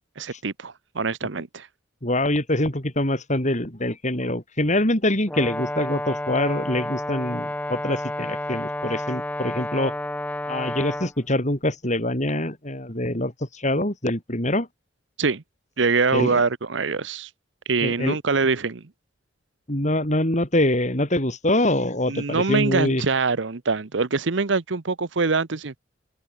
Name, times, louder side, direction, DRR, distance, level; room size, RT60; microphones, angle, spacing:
voice 1, 0.2-1.7 15.2-15.4 15.8-17.3 17.7-18.8 22.1-25.8, right 4 dB, 70° right, 0.9 m, -24 dB
voice 2, 2.0-9.9 10.5-14.7 16.1-16.4 17.8-18.2 19.7-23.0, left 1 dB, 40° left, 5.0 m, -24 dB
Brass instrument, 5.3-11.1, left 1 dB, 10° left, 0.9 m, -30 dB
head